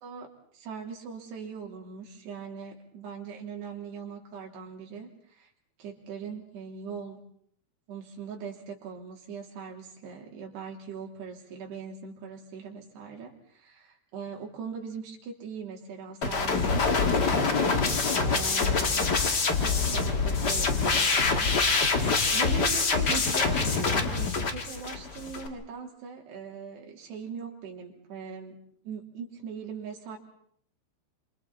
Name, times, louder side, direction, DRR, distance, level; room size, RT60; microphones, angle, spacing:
voice 1, 0.5-5.5 5.8-7.2 7.9-17.6 18.2-21.5 22.3-28.6 28.9-30.2, right 6 dB, 65° right, 1 dB, 5.4 m, -40 dB
sound 1, 16.2-25.5, left 4 dB, 60° left, 1.0 m, -25 dB
28.5 x 27.5 x 4.3 m, 0.63 s
omnidirectional pair, 5.2 m